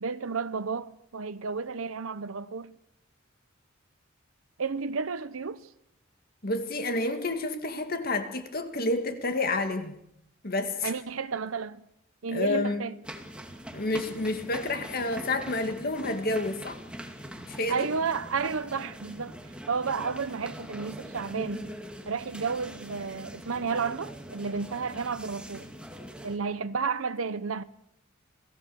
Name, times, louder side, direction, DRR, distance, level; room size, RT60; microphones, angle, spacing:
voice 1, 0.0-2.7 4.6-5.7 10.8-11.8 12.2-13.0 17.7-19.4 19.7-21.7 22.1-25.7 26.2-27.6, right 5 dB, 90° right, 0.8 m, -32 dB
voice 2, 6.4-9.9 10.4-10.9 12.3-12.8 13.7-16.8 17.5-17.9, left 2 dB, 50° left, 2.1 m, -29 dB
sound 1, 13.0-26.4, equal, 5° right, 2.3 m, -43 dB
28.5 x 18.0 x 6.9 m
head